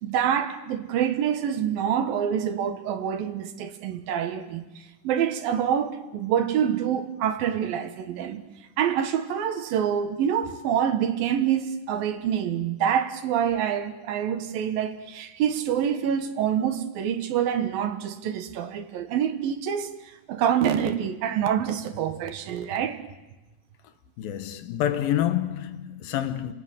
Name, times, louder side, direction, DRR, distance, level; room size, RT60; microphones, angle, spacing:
voice 1, 0.0-8.4 8.8-23.0, right 9 dB, 75° right, 2.9 m, -26 dB
voice 2, 24.2-26.5, left 11 dB, 75° left, 2.9 m, -27 dB
30.0 x 18.0 x 9.2 m
omnidirectional pair, 4.4 m